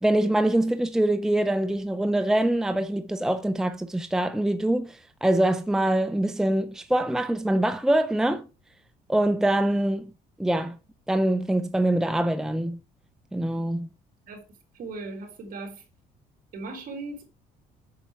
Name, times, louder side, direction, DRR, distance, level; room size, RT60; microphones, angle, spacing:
voice 1, 0.0-8.5 9.1-10.1 10.4-10.8 11.1-12.8 13.3-13.9, right 1 dB, 5° right, 0.7 m, -24 dB
voice 2, 14.7-15.8 16.5-17.2, right 3 dB, 55° right, 3.7 m, -37 dB
8.6 x 6.9 x 4.9 m
cardioid pair, 110°, 17 cm